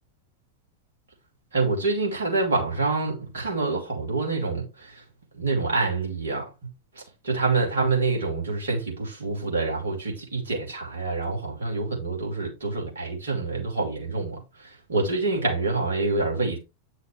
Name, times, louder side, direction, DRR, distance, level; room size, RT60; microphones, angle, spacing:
voice 1, 1.5-5.0 5.3-6.5 7.2-16.6, right 3 dB, 65° right, 3.1 m, -26 dB
8.6 x 6.2 x 3.3 m
figure-of-eight pair, 90°, 0 cm